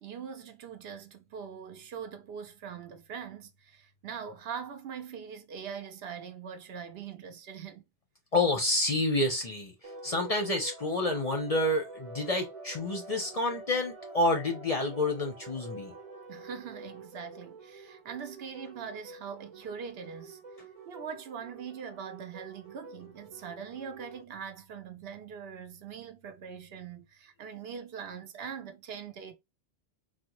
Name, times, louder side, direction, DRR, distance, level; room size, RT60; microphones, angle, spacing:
voice 1, 0.0-7.8 16.3-20.4 20.9-29.3, right 7 dB, 70° right, 0.8 m, -42 dB
voice 2, 8.3-9.7 10.0-15.9, left 2 dB, 45° left, 0.6 m, -28 dB
sound 1, 9.8-24.2, right 2 dB, 35° right, 0.7 m, -48 dB
3.6 x 2.1 x 2.9 m
omnidirectional pair, 1.1 m